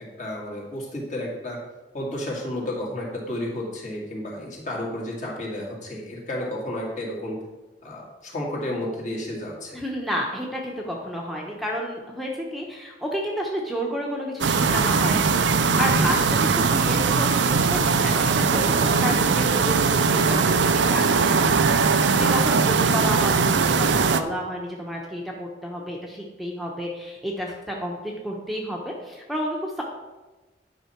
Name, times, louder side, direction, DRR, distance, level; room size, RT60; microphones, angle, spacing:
voice 1, 0.0-1.6 1.9-7.4 7.8-9.8 16.0-16.2 23.0-23.1, left 1 dB, 45° left, -3 dB, 2.3 m, -32 dB
voice 2, 9.7-29.8, equal, ahead, -2 dB, 1.0 m, -31 dB
sound 1, 14.4-24.2, right 5 dB, 90° right, 0.5 m, -20 dB
10.0 x 5.6 x 4.5 m, 1.2 s
head